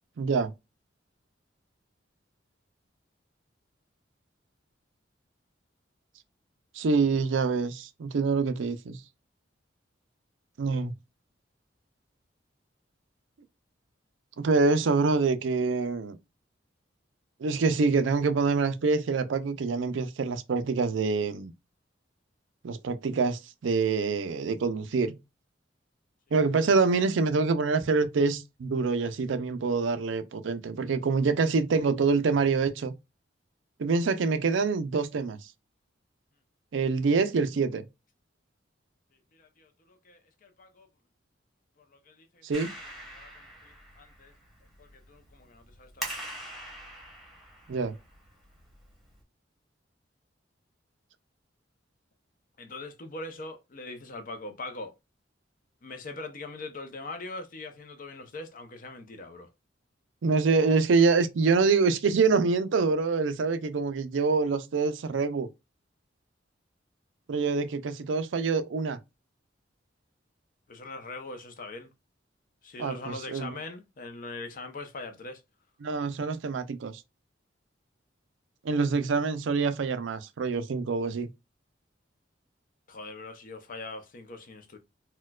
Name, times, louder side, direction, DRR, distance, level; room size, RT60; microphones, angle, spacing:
voice 1, 0.2-0.5 6.8-9.0 10.6-10.9 14.4-16.2 17.4-21.5 22.6-25.2 26.3-32.9 33.8-35.4 36.7-37.8 42.4-42.7 47.7-47.9 60.2-65.5 67.3-69.0 72.8-73.5 75.8-77.0 78.6-81.3, right 4 dB, 80° right, 0.4 m, -26 dB
voice 2, 39.3-40.9 41.8-42.4 43.1-43.3 43.6-44.3 44.8-46.4 52.6-54.9 55.8-59.5 70.7-71.9 72.6-75.4 82.9-84.8, left 2 dB, 45° left, 0.6 m, -42 dB
Clapping, 42.5-49.2, right 1 dB, ahead, 1.1 m, -44 dB
4.2 x 2.2 x 2.3 m
head